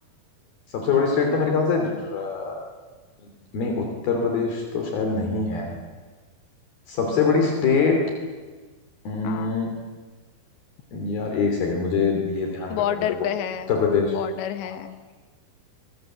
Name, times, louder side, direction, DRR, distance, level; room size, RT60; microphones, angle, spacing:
voice 1, 0.7-2.6 3.2-5.7 6.9-8.0 9.1-9.7 10.9-12.8 13.2-13.3 13.7-14.2 14.6-14.7, left 5 dB, 60° left, 2 dB, 4.5 m, -23 dB
voice 2, 9.2-9.6 12.7-13.7 14.1-15.0, left 10 dB, 90° left, 10 dB, 3.6 m, -29 dB
25.0 x 23.0 x 7.9 m, 1.4 s
omnidirectional pair, 4.9 m